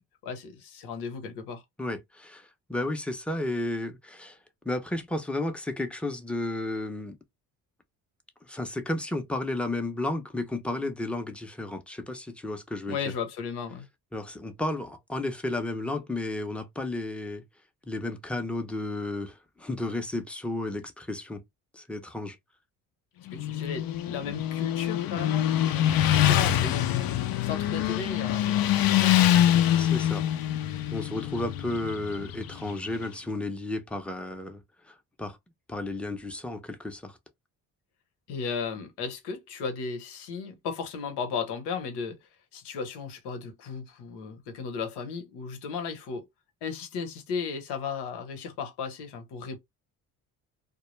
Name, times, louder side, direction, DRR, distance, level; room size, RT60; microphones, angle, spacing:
voice 1, 0.0-1.6 12.9-13.9 23.3-29.7 38.3-42.2 42.5-46.3 46.6-49.6, left 6 dB, 85° left, 0.9 m, -35 dB
voice 2, 1.8-4.4 4.6-7.2 8.4-13.0 14.1-17.4 17.8-21.4 21.7-22.4 29.8-30.2 30.9-35.4 35.7-37.2, left 2 dB, 5° left, 0.6 m, -33 dB
Motorcycle, 23.3-33.1, left 12 dB, 65° left, 0.5 m, -25 dB
2.2 x 2.0 x 3.0 m
cardioid pair, 80°, 39 cm